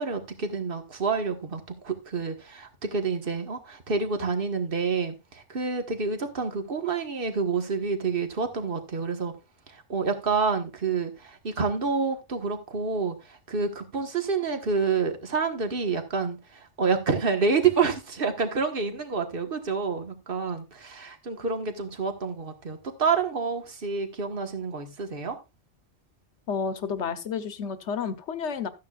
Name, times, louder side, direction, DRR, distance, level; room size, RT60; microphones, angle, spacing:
voice 1, 0.0-9.3 9.9-25.4, right 5 dB, 50° right, 1.6 m, -28 dB
voice 2, 26.5-28.7, left 6 dB, 80° left, 1.2 m, -30 dB
13.5 x 9.4 x 2.4 m
omnidirectional pair, 1.2 m